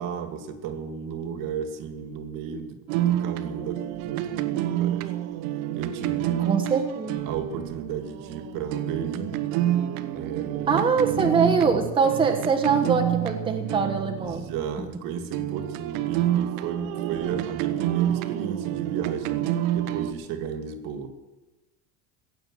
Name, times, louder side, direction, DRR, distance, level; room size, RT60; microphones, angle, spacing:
voice 1, 0.0-5.1 5.7-6.6 7.3-9.4 10.1-11.9 14.2-19.5 19.7-21.1, right 7 dB, 55° right, 9 dB, 1.8 m, -34 dB
sound 1, 2.9-14.9 15.3-20.1, right 12 dB, 80° right, 1.2 m, -28 dB
voice 2, 6.5-7.2 10.7-14.4, right 5 dB, 15° right, 3 dB, 1.1 m, -23 dB
15.5 x 9.0 x 7.5 m, 1.1 s
cardioid pair, 145°, 40 cm